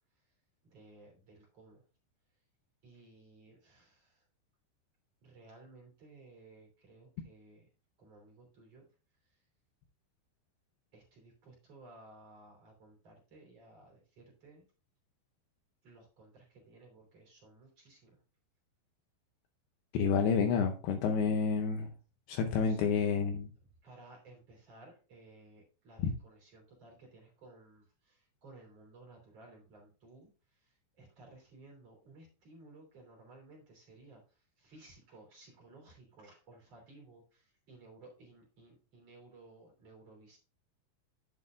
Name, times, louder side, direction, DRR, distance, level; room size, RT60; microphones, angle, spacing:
voice 1, 0.7-1.8 2.8-4.2 5.2-7.7 8.0-8.8 10.9-14.6 15.8-18.2 22.6-22.9 23.8-30.3 30.6-30.7 31.0-34.2 34.6-40.4, right 2 dB, 40° right, 3.8 m, -57 dB
voice 2, 19.9-21.9 22.3-23.5, left 6 dB, 75° left, 2.5 m, -29 dB
10.5 x 8.9 x 2.5 m
omnidirectional pair, 5.1 m